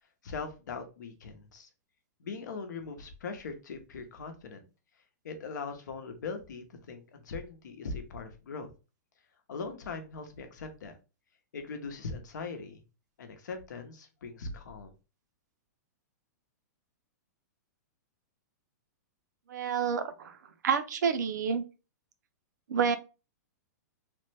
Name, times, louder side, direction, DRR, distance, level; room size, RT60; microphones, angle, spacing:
voice 1, 0.2-1.7 2.2-4.6 5.2-8.7 9.5-11.0 11.5-12.8 13.2-14.9, left 4 dB, 85° left, 6 dB, 0.8 m, -40 dB
voice 2, 19.5-20.4 20.6-21.6 22.7-23.0, right 6 dB, 75° right, 9 dB, 0.5 m, -28 dB
3.3 x 2.1 x 3.2 m, 0.31 s
hypercardioid pair, 170°, 9 cm